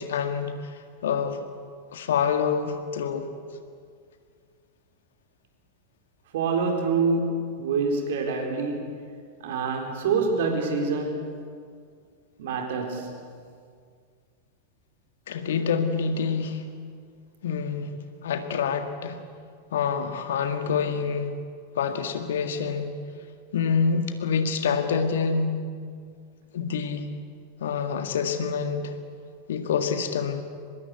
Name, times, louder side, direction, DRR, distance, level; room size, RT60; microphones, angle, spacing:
voice 1, 0.0-1.5 1.9-3.3 15.3-16.6 17.4-17.9 18.2-19.2 19.7-21.3 21.8-22.9 23.5-25.6 26.5-27.1 27.6-28.9 29.5-30.4, left 6 dB, 60° left, 7 dB, 1.9 m, -26 dB
voice 2, 6.3-8.9 9.4-11.3 12.4-13.2, right 4 dB, 55° right, 3 dB, 4.3 m, -26 dB
24.5 x 20.5 x 8.3 m, 2.1 s
figure-of-eight pair, 90°, 0 cm